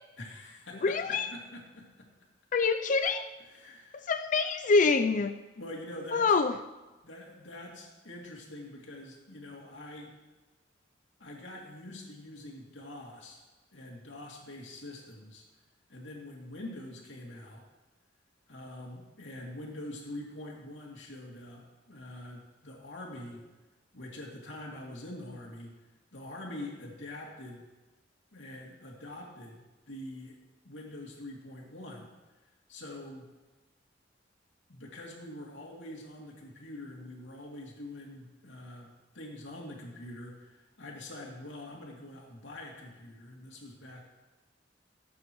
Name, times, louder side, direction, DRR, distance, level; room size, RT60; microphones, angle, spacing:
voice 1, 0.2-2.1 3.5-4.1 5.5-6.4 7.0-10.1 11.2-13.4 13.7-15.4 15.9-17.6 18.5-23.4 23.9-25.7 26.1-27.6 28.3-30.4 30.6-32.1 32.7-33.3 34.7-38.9 39.1-44.0, left 1 dB, 80° left, -2 dB, 2.6 m, -45 dB
voice 2, 0.8-1.3 2.5-3.3 3.9-5.3 6.1-6.5, left 4 dB, 45° left, 8 dB, 0.4 m, -25 dB
17.0 x 8.5 x 3.1 m, 1.2 s
head